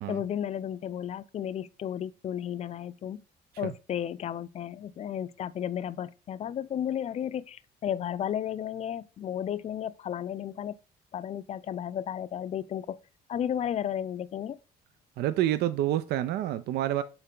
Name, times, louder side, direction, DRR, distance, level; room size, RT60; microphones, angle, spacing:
voice 1, 0.1-3.2 3.6-10.8 11.1-13.0 13.3-14.6, left 10 dB, 40° left, 0.4 m, -33 dB
voice 2, 15.2-17.0, right 13 dB, 75° right, 0.4 m, -28 dB
6.6 x 4.0 x 3.7 m
cardioid pair, 110°, 17 cm